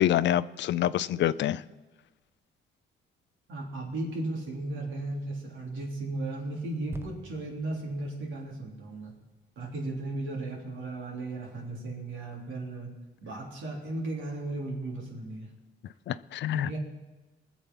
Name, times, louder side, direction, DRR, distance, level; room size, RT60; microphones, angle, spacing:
voice 1, 0.0-1.6 16.1-16.8, left 12 dB, 65° left, 17 dB, 0.5 m, -26 dB
voice 2, 3.5-9.1 9.6-12.9 13.2-15.5 16.5-16.8, right 2 dB, 75° right, -1 dB, 3.6 m, -35 dB
sound 1, 6.9-10.5 11.1-11.2, right 2 dB, 10° right, 0.9 m, -49 dB
20.5 x 7.3 x 5.5 m, 1.2 s
cardioid pair, 90°, 20 cm